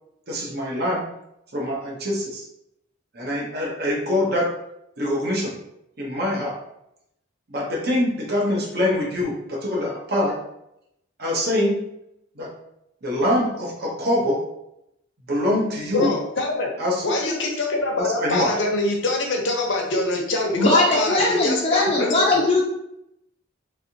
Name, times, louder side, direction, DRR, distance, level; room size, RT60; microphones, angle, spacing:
voice 1, 0.3-1.0 1.5-2.4 3.1-4.5 5.0-5.5 6.0-6.6 7.5-10.4 11.2-11.9 12.4-12.5 13.0-14.4 15.3-16.1 16.8-17.0 18.0-18.5, left 1 dB, 50° right, -2 dB, 0.9 m, -24 dB
voice 2, 15.9-16.7 17.0-22.4, left 2 dB, 65° left, 1 dB, 0.8 m, -24 dB
voice 3, 20.6-22.6, left 2 dB, 30° left, -4 dB, 0.6 m, -19 dB
3.4 x 3.3 x 2.8 m, 0.81 s
head